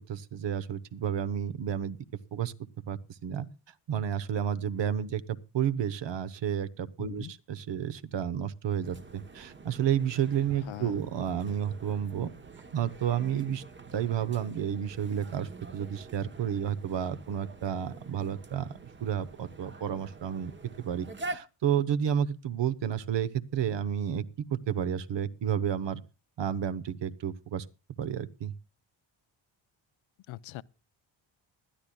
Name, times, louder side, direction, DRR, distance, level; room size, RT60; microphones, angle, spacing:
voice 1, 0.1-2.0 2.3-2.5 2.9-3.5 3.9-12.3 12.7-13.6 13.9-18.7 19.0-20.5 20.8-24.2 24.5-26.0 26.4-27.6 28.0-28.5, right 9 dB, 60° right, 1.0 m, -31 dB
voice 2, 7.0-7.3 10.6-11.0 30.3-30.6, left 16 dB, 70° left, 0.6 m, -41 dB
sound 1, 8.8-21.4, right 3 dB, 25° right, 0.9 m, -46 dB
20.0 x 12.0 x 2.3 m
cardioid pair, 100°, 49 cm